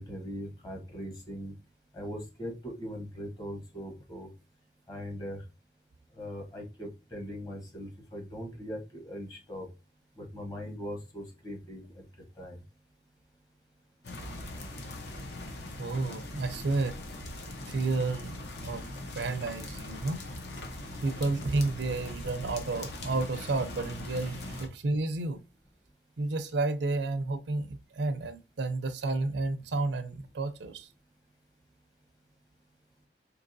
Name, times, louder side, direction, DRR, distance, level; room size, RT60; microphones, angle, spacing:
voice 1, 0.0-1.5 1.9-4.3 4.9-5.4 6.2-9.7 10.2-12.0 12.4-12.6, equal, 20° left, 1.0 m, -40 dB
sound 1, 14.0-24.7, left 1 dB, 65° left, 0.8 m, -41 dB
voice 2, 15.8-17.0 17.7-18.3 18.6-18.8 19.2-20.2 21.0-25.4 26.2-30.9, right 3 dB, 75° right, 0.5 m, -31 dB
4.6 x 2.8 x 2.6 m
head